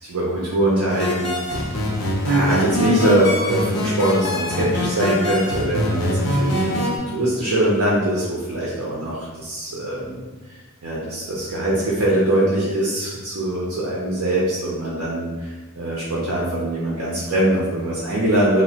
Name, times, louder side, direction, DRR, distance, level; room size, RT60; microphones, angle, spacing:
voice 1, 0.0-1.7 2.2-10.2 10.8-18.6, right 1 dB, 80° right, -5 dB, 0.6 m, -22 dB
sound 1, 0.9-7.0, equal, 85° left, 0.6 m, -23 dB
3.0 x 2.0 x 2.8 m, 1.3 s
head